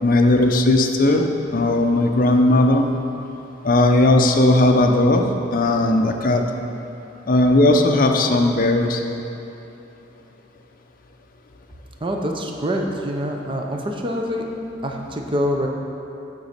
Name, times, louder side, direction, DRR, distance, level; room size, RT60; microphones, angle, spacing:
voice 1, 0.0-2.9 3.6-5.2 5.5-6.4 7.3-9.0, left 2 dB, 50° left, 3 dB, 0.7 m, -17 dB
voice 2, 12.0-14.5 14.8-15.7, equal, 25° right, 1 dB, 0.7 m, -25 dB
9.3 x 4.0 x 7.3 m, 2.9 s
head